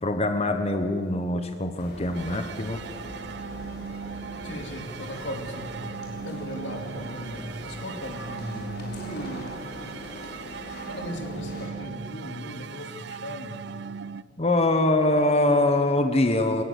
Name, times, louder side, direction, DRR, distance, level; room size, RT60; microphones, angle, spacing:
voice 1, 0.0-2.8 14.4-16.6, left 2 dB, 35° left, 7 dB, 1.1 m, -23 dB
sound 1, 1.8-11.7, left 1 dB, 60° left, 5.4 m, -42 dB
sound 2, 2.1-14.2, right 6 dB, 70° right, 0.5 m, -39 dB
voice 2, 4.4-5.7 6.1-9.6 10.9-13.7, equal, 85° left, 4 dB, 2.9 m, -37 dB
22.5 x 20.0 x 8.3 m, 2.3 s
head